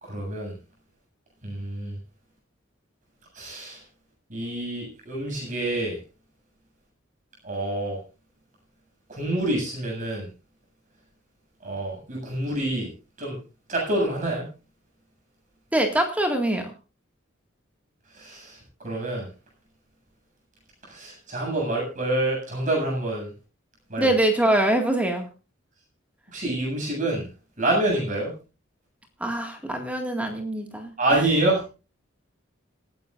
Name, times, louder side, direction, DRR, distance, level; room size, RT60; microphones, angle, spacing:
voice 1, 0.0-0.5 1.4-2.0 3.3-3.8 4.3-6.0 7.4-8.0 9.1-10.3 11.6-12.9 13.2-13.4 13.7-14.4 18.1-18.6 18.8-19.3 20.8-23.3 23.9-24.1 26.3-27.3 27.6-28.3 31.0-31.6, right 1 dB, 40° right, -1 dB, 7.7 m, -27 dB
voice 2, 15.7-16.7 24.0-25.3 29.2-31.2, right 1 dB, 5° right, 3 dB, 2.0 m, -24 dB
27.0 x 9.9 x 2.6 m, 0.32 s
head